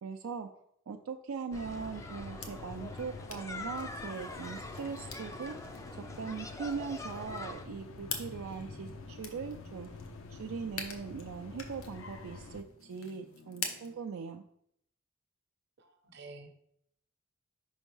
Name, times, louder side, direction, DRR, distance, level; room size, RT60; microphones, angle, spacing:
voice 1, 0.0-0.5 0.9-5.5 5.9-9.9 10.3-14.4, right 5 dB, 80° right, 4 dB, 0.4 m, -40 dB
sound 1, 1.5-12.6, left 3 dB, 75° left, 0.6 m, -47 dB
sound 2, 1.5-7.6, left 2 dB, 15° left, 0.3 m, -45 dB
sound 3, 2.4-14.0, left 5 dB, 90° left, 1.0 m, -47 dB
voice 2, 15.8-16.5, right 3 dB, 55° right, 6 dB, 0.8 m, -50 dB
5.3 x 3.5 x 5.4 m, 0.72 s
head